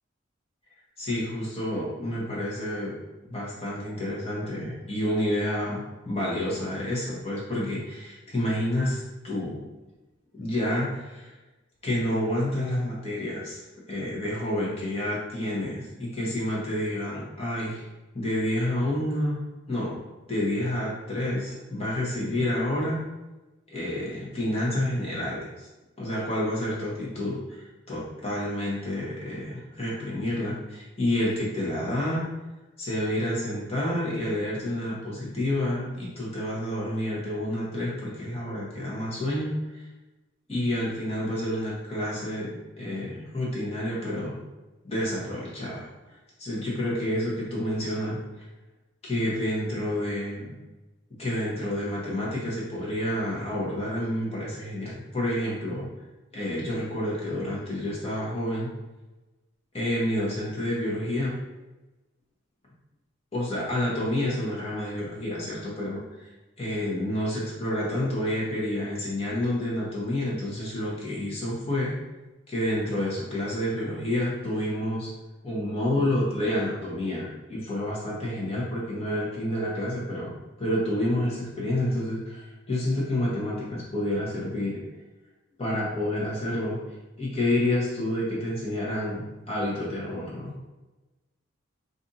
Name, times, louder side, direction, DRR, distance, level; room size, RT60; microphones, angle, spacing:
voice 1, 1.0-2.9 3.2-9.6 10.4-11.3 11.8-17.8 18.1-19.4 19.7-20.0 20.3-23.0 23.7-25.7 26.0-32.3 32.8-39.8 40.5-44.4 44.8-45.9 46.4-48.5 49.0-50.5 51.2-55.9 56.3-58.7 59.7-61.4 63.3-66.3 66.6-72.0 72.5-75.1 75.4-80.3 80.6-84.8 85.6-86.8 87.2-90.5, left 1 dB, 30° left, -6 dB, 0.9 m, -29 dB
2.6 x 2.5 x 3.9 m, 1.1 s
head